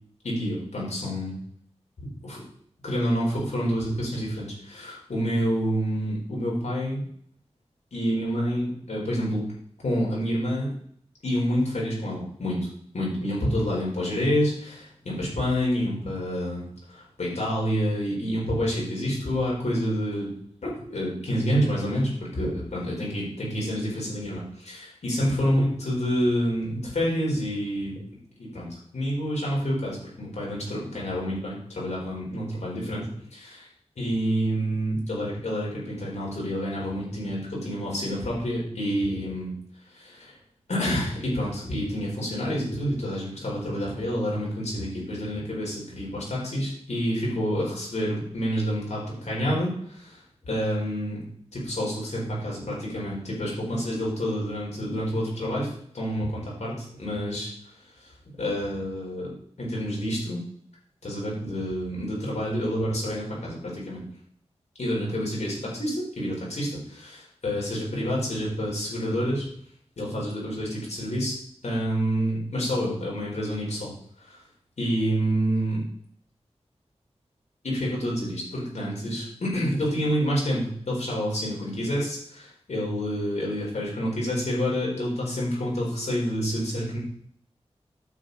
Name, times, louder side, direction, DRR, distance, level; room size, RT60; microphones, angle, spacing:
voice 1, 0.2-1.4 2.2-2.4 2.8-7.0 7.9-9.5 9.8-10.7 11.2-12.7 12.9-20.3 20.6-28.0 28.4-33.7 34.0-39.5 39.9-40.4 40.7-51.2 51.5-57.7 58.0-58.1 58.4-59.3 59.6-60.4 61.0-64.0 64.8-69.5 70.0-71.3 71.6-73.9 74.2-74.4 74.8-75.8 77.6-87.0, equal, 85° left, -5 dB, 4.4 m, -28 dB
9.3 x 7.4 x 4.1 m, 0.64 s
wide cardioid pair, 60°, 11 cm